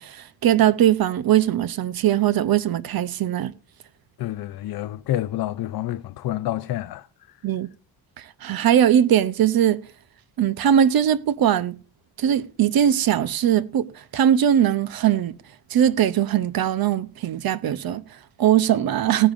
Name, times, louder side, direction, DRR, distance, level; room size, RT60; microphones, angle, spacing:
voice 1, 0.0-3.5 7.4-7.7 8.2-9.8 10.4-11.8 12.2-15.3 15.7-19.3, right 10 dB, 50° right, 0.6 m, -20 dB
voice 2, 4.2-7.4, left 14 dB, 55° left, 0.5 m, -29 dB
17.5 x 10.0 x 2.5 m
cardioid pair, 145°, 45 cm